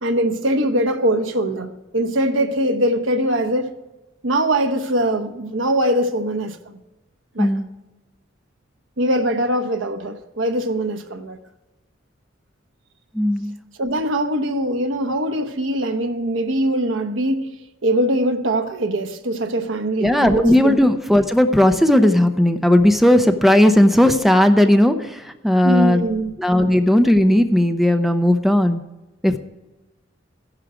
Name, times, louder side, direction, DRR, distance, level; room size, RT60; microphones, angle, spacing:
voice 1, 0.0-3.8 4.2-6.6 7.3-7.5 9.0-11.4 13.8-17.5 17.8-20.8 25.6-26.3, right 1 dB, 85° right, 1.0 m, -22 dB
voice 2, 7.4-7.7 13.1-13.5 20.0-26.0 26.4-28.8 29.2-29.4, left 1 dB, ahead, 0.6 m, -16 dB
14.5 x 11.0 x 4.9 m
head